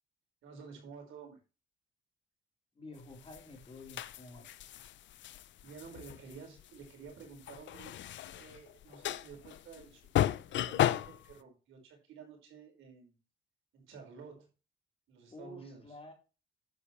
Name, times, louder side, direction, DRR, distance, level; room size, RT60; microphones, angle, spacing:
voice 1, 0.4-1.4 5.6-7.9 8.2-13.2 13.7-14.5 15.1-16.0, right 5 dB, 80° right, 5.0 m, -51 dB
voice 2, 2.8-4.6 15.3-16.1, left 2 dB, 30° left, 4.0 m, -50 dB
sound 1, 3.1-11.3, left 12 dB, 70° left, 0.6 m, -35 dB
10.5 x 8.1 x 3.2 m
cardioid pair, 90°, 20 cm